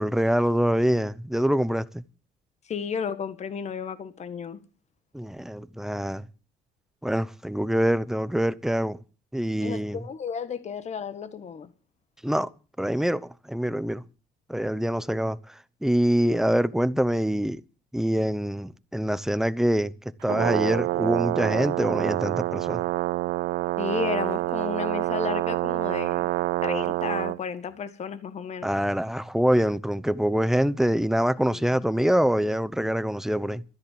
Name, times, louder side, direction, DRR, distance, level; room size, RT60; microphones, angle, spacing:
voice 1, 0.0-2.0 5.1-6.2 7.0-9.0 9.3-10.0 12.2-12.5 12.8-14.0 14.5-15.4 15.8-17.6 17.9-19.9 20.2-22.8 28.6-33.6, equal, ahead, 0.8 m, -25 dB
voice 2, 2.7-4.6 9.6-11.7 23.8-26.3 26.6-28.7 31.5-31.8, left 6 dB, 40° left, 1.6 m, -33 dB
Brass instrument, 20.2-27.4, right 18 dB, 80° right, 0.7 m, -27 dB
13.5 x 10.5 x 7.7 m
cardioid pair, 110°, 17 cm